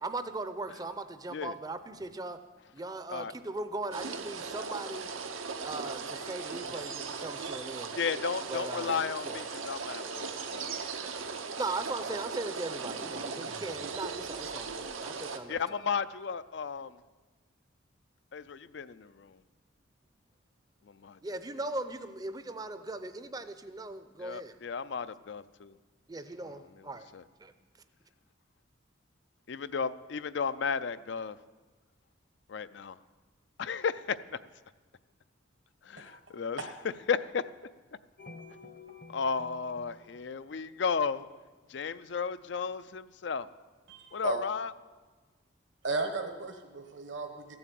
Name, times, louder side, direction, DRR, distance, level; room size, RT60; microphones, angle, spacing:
voice 1, 0.0-2.4 2.7-5.1 5.6-7.9 8.5-9.5 11.6-15.8 21.2-24.5 26.1-27.1 27.4-27.5, right 2 dB, 20° right, 10 dB, 0.6 m, -39 dB
sound 1, 3.9-15.4, right 5 dB, 90° right, 1.0 m, -38 dB
sound 2, 5.4-8.1 8.9-14.9, left 3 dB, 85° left, 2.8 m, -57 dB
voice 2, 7.9-11.1 15.5-16.9 18.3-19.4 20.9-21.2 24.2-25.7 26.5-27.2 29.5-31.4 32.5-33.0 33.6-34.4 35.8-36.6 37.1-37.5 39.1-41.3 41.7-43.5 44.1-44.7, left 6 dB, 60° left, 14 dB, 0.4 m, -34 dB
sound 3, 38.2-41.3, left 3 dB, 45° left, 0.9 m, -51 dB
voice 3, 43.9-44.4 45.8-47.5, right 3 dB, 65° right, 4 dB, 1.1 m, -35 dB
14.5 x 7.9 x 7.6 m, 1.3 s
head